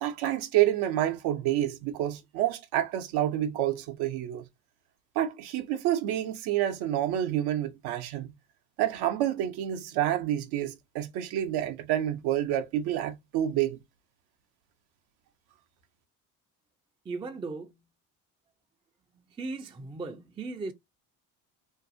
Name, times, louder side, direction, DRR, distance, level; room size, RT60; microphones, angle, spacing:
voice 1, 0.0-4.4 5.2-8.3 8.8-13.8, right 12 dB, 70° right, 0.6 m, -28 dB
voice 2, 17.0-17.8 19.1-20.7, right 3 dB, 15° right, 0.3 m, -37 dB
2.6 x 2.3 x 2.6 m
supercardioid pair, 85°, 40 cm